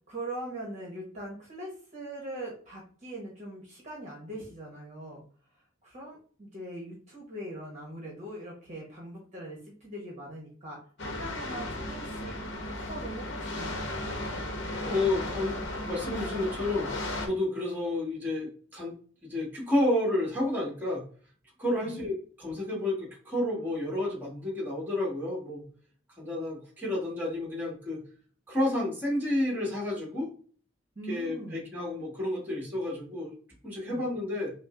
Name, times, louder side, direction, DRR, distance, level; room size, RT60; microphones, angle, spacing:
voice 1, 0.1-5.2 5.8-14.3 21.8-21.9 30.9-31.6 33.8-34.1, right 1 dB, 35° right, -3 dB, 1.1 m, -41 dB
sound 1, 11.0-17.3, left 1 dB, 65° left, 0.8 m, -35 dB
voice 2, 14.8-18.9 19.2-21.0 21.6-25.6 26.2-28.0 28.5-30.3 31.1-33.3 33.6-34.5, left 1 dB, 10° right, -4 dB, 1.5 m, -30 dB
5.9 x 2.1 x 2.5 m, 0.44 s
head